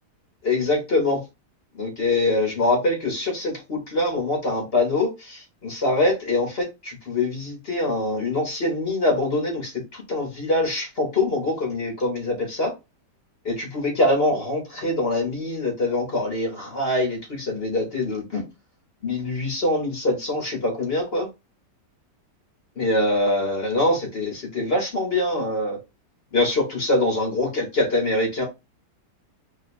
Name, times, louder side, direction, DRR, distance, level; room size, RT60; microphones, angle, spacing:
voice 1, 0.4-1.2 1.8-12.7 13.5-18.4 19.0-21.3 22.8-25.8 26.3-28.4, left 2 dB, 45° left, 1 dB, 0.9 m, -24 dB
3.0 x 2.2 x 4.1 m, 0.25 s
omnidirectional pair, 1.8 m